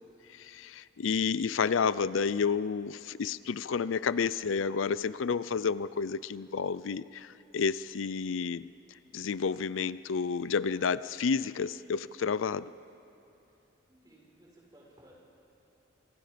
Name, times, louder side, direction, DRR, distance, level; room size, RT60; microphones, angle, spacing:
voice 1, 0.3-8.7 9.1-12.7, left 5 dB, 85° left, 17 dB, 0.5 m, -30 dB
voice 2, 13.8-15.1, right 1 dB, 20° right, -3 dB, 5.5 m, -58 dB
28.0 x 25.5 x 5.1 m, 2.8 s
head